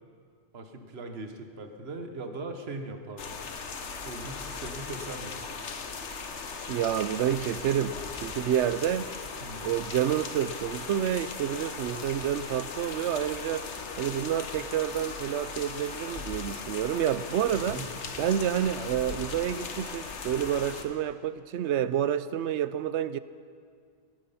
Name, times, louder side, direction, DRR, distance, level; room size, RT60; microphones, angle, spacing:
voice 1, 0.5-3.3 4.0-5.4 9.4-9.7 17.5-17.9, right 2 dB, 65° right, 1.5 m, -40 dB
sound 1, 3.2-20.8, left 5 dB, 85° left, 1.4 m, -38 dB
voice 2, 6.7-9.1 9.6-13.7 14.0-17.8 18.2-23.2, right 10 dB, 90° right, 0.9 m, -29 dB
17.5 x 13.0 x 5.7 m
omnidirectional pair, 1.1 m